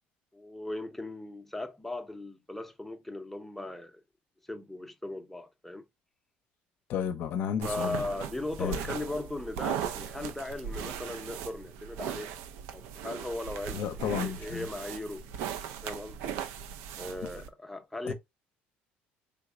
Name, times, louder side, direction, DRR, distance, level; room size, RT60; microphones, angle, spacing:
voice 1, 0.3-3.9 4.5-5.8 7.6-12.3 12.7-15.2 15.8-16.4 17.0-18.1, left 2 dB, 5° left, 0.6 m, -38 dB
voice 2, 6.9-8.1 8.6-8.8 13.7-14.7 18.0-18.1, left 8 dB, 65° left, 0.5 m, -32 dB
sound 1, 7.6-17.5, right 8 dB, 85° right, 0.4 m, -38 dB
3.5 x 3.0 x 2.3 m
cardioid pair, 105°, 4 cm